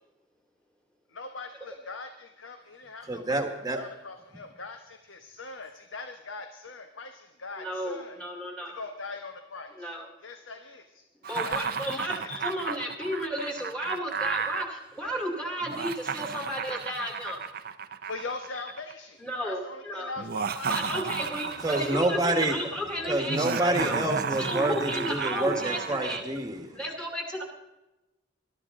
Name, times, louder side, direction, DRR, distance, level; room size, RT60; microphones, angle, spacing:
voice 1, 1.1-3.4 3.7-8.2 8.7-9.9 10.2-11.0 11.4-12.3 12.7-12.8 18.0-21.0, left 3 dB, 80° left, 6 dB, 1.0 m, -41 dB
voice 2, 3.1-3.8 21.6-22.6 23.1-26.8, right 2 dB, 20° right, 5 dB, 1.4 m, -28 dB
voice 3, 7.6-8.8 9.8-10.1 11.3-17.4 18.5-18.6 19.2-20.1 20.7-24.0 24.4-26.2 26.7-27.4, equal, 5° left, 1 dB, 2.3 m, -33 dB
Laughter, 11.2-14.6 15.6-18.9 20.2-22.2 23.3-26.2, right 6 dB, 50° right, 0.6 m, -33 dB
21.0 x 12.5 x 3.7 m, 1.0 s
head